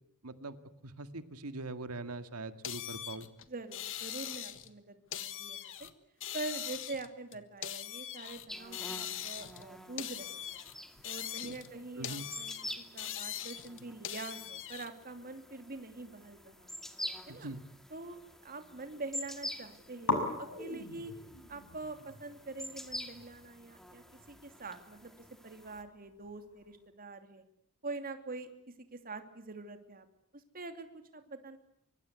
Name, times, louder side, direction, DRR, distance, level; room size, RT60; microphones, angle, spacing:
voice 1, 0.2-0.6 0.8-3.3 11.4-11.6 12.0-12.3 17.3-17.6, right 2 dB, 80° right, 11 dB, 2.0 m, -42 dB
sound 1, 2.6-4.7 5.1-5.9 6.2-8.5 8.7-9.7 10.0-11.7 12.0-14.9, left 11 dB, 60° left, 1.6 m, -41 dB
voice 2, 3.5-5.9 6.3-10.6 11.0-16.7 17.3-17.5 17.9-21.1 21.5-27.4 27.8-28.5 28.9-30.1 30.3-30.9 31.1-31.6, right 3 dB, 40° right, 8 dB, 2.8 m, -45 dB
sound 2, 8.5-25.8, equal, ahead, 2.2 m, -47 dB
sound 3, 16.5-18.3 18.6-19.2 19.5-19.6 20.0-26.9, left 3 dB, 85° left, 6.1 m, -41 dB
24.5 x 24.5 x 8.3 m, 0.73 s
head